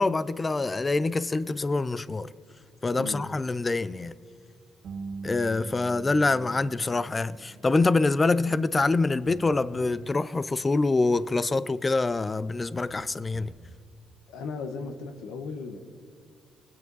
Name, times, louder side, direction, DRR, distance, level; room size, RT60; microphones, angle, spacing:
voice 1, 0.0-2.3 2.8-4.1 5.2-13.5, left 3 dB, 25° left, 0.4 m, -25 dB
voice 2, 2.9-3.3 14.3-15.8, left 4 dB, 90° left, 1.1 m, -36 dB
sound 1, 4.8-10.8 12.0-12.1 12.6-13.7, right 3 dB, 65° right, 1.5 m, -44 dB
20.5 x 9.4 x 4.0 m
cardioid pair, 90°, 0 cm